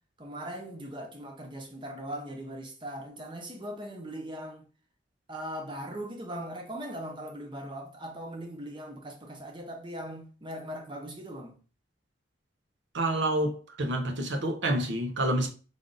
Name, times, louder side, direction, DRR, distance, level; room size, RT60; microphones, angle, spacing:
voice 1, 0.2-4.7 5.3-11.6, equal, 25° right, 0.7 m, -39 dB
voice 2, 12.9-15.5, right 1 dB, 80° right, 0.8 m, -28 dB
3.4 x 2.5 x 3.9 m
head